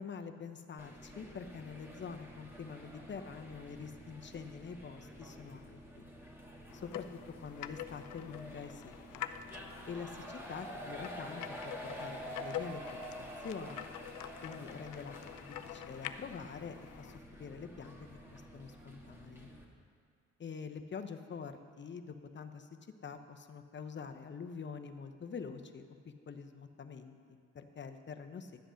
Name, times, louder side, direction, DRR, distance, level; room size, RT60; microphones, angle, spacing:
voice 1, 0.0-6.0 6.7-7.0 7.4-9.3 9.8-13.9 14.4-17.1 17.4-19.5 20.4-22.7 23.0-28.5, left 6 dB, 40° left, 7 dB, 0.8 m, -46 dB
sound 1, 0.8-19.6, equal, 10° right, 1.7 m, -49 dB
sound 2, 6.7-17.2, left 12 dB, 80° left, 0.5 m, -46 dB
11.5 x 7.9 x 6.4 m, 2.2 s
cardioid pair, 90°, 30 cm